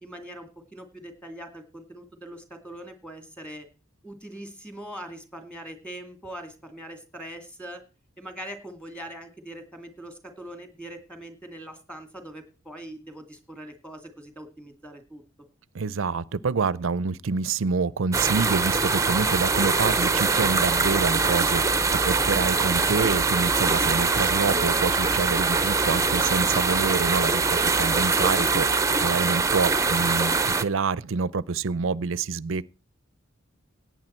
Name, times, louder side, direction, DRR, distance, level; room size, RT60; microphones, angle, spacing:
voice 1, 0.0-3.7 4.0-7.8 8.2-15.2, right 1 dB, 5° left, 2.3 m, -42 dB
voice 2, 15.7-32.6, right 4 dB, 70° right, 0.5 m, -27 dB
sound 1, 18.1-30.6, right 4 dB, 15° right, 0.7 m, -23 dB
17.0 x 9.3 x 4.4 m
head